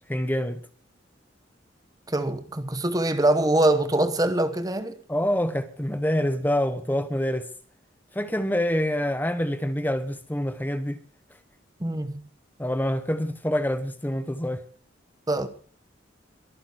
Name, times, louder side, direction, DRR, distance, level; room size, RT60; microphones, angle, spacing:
voice 1, 0.1-0.6 5.1-7.5 8.1-11.0 12.6-14.6, equal, 10° left, 0.9 m, -26 dB
voice 2, 2.1-5.0 11.8-12.2 15.3-15.5, right 1 dB, 20° right, 1.0 m, -23 dB
23.0 x 9.0 x 4.6 m
head